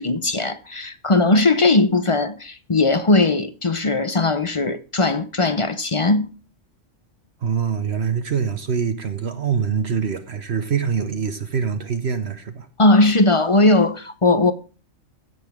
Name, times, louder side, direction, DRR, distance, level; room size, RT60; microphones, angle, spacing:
voice 1, 0.0-6.3 12.8-14.5, left 2 dB, 35° left, 0.6 m, -18 dB
voice 2, 7.4-12.7, right 7 dB, 60° right, 1.1 m, -24 dB
16.0 x 6.9 x 3.5 m
omnidirectional pair, 1.3 m